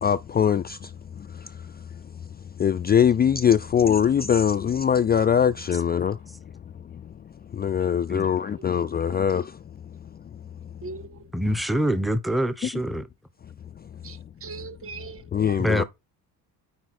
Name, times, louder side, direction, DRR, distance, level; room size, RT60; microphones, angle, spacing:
voice 1, 0.0-0.9 1.3-1.6 2.6-6.2 7.0-7.1 7.5-9.6 15.3-15.8, left 8 dB, 25° left, 0.4 m, -22 dB
voice 2, 10.8-11.2 14.0-15.8, right 4 dB, 35° right, 0.8 m, -40 dB
voice 3, 11.3-13.0 15.6-15.8, equal, ahead, 0.8 m, -25 dB
9.6 x 4.3 x 4.2 m
cardioid pair, 115°, 38 cm